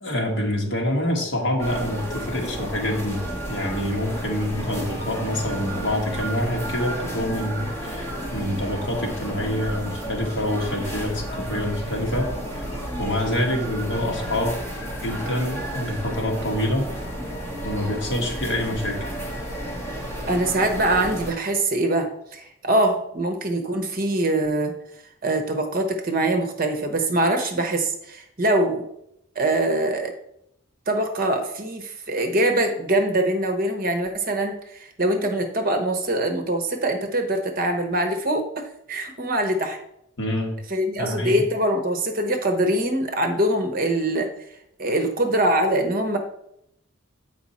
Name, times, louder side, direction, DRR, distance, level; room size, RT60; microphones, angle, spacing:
voice 1, 0.0-12.6 13.0-14.6 15.0-16.9 17.6-19.0 40.2-40.5 41.0-41.4, left 1 dB, 55° left, 0 dB, 1.6 m, -26 dB
sound 1, 1.6-21.3, equal, 10° left, 1.5 m, -32 dB
voice 2, 20.3-24.7 25.2-28.8 29.3-30.1 30.9-39.8 40.7-44.3 44.8-46.2, right 1 dB, 40° right, 5 dB, 0.9 m, -23 dB
7.7 x 4.9 x 4.2 m, 0.76 s
head